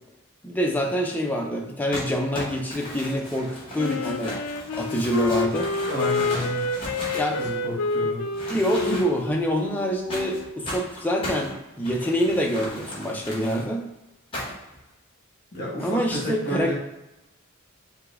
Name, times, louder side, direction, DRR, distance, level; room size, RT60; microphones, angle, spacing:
voice 1, 0.4-4.4 4.7-5.8 7.1-7.4 8.5-13.8 15.8-16.7, equal, 10° left, 0 dB, 0.4 m, -26 dB
Crumpling crinkling, 1.9-7.9 8.3-9.3 10.1-13.6 14.3-14.7, equal, 25° left, 1.3 m, -36 dB
Wind instrument woodwind instrument, 3.8-10.5, left 3 dB, 85° left, 0.3 m, -28 dB
voice 2, 5.8-6.6 7.4-8.2 15.5-16.7, left 1 dB, 45° left, -5 dB, 1.5 m, -30 dB
5.2 x 2.2 x 3.4 m, 0.96 s
head